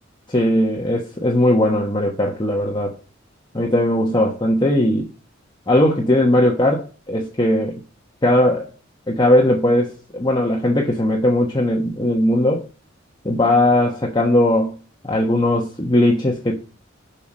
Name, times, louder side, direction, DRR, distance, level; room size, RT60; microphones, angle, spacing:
voice 1, 0.3-3.0 3.5-5.1 5.7-7.8 8.2-8.7 9.1-12.7 13.2-14.7 15.0-16.6, left 1 dB, 25° left, 1.2 m, -18 dB
7.1 x 5.9 x 6.2 m
head